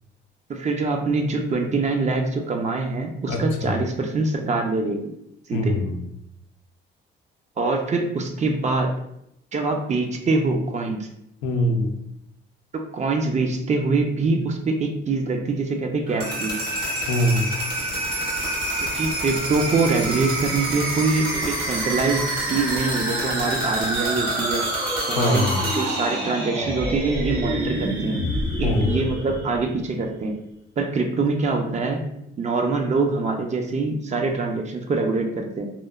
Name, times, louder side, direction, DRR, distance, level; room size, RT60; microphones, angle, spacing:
voice 1, 0.5-5.1 5.5-5.7 7.6-8.9 9.5-11.1 12.7-16.6 18.8-24.7 25.1-28.2 28.6-30.3 30.8-32.0 32.4-35.7, right 3 dB, 35° right, 3 dB, 0.4 m, -24 dB
voice 2, 3.3-3.8 5.5-6.0 11.4-12.0 17.1-17.5 25.1-25.7 28.6-29.0, left 1 dB, 90° left, 3 dB, 0.4 m, -23 dB
sound 1, 16.1-29.9, right 1 dB, 50° right, 1.4 m, -27 dB
2.9 x 2.1 x 2.3 m, 0.79 s
cardioid pair, 90°, 20 cm